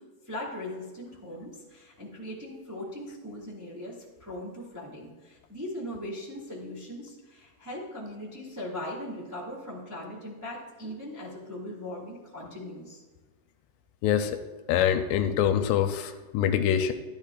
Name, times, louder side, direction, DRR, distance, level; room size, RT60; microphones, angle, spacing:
voice 1, 0.0-13.0, left 1 dB, 15° right, -5 dB, 0.6 m, -39 dB
voice 2, 14.0-14.4 14.7-16.9, left 9 dB, 85° left, 8 dB, 2.6 m, -25 dB
14.5 x 10.5 x 2.5 m, 1.3 s
omnidirectional pair, 5.0 m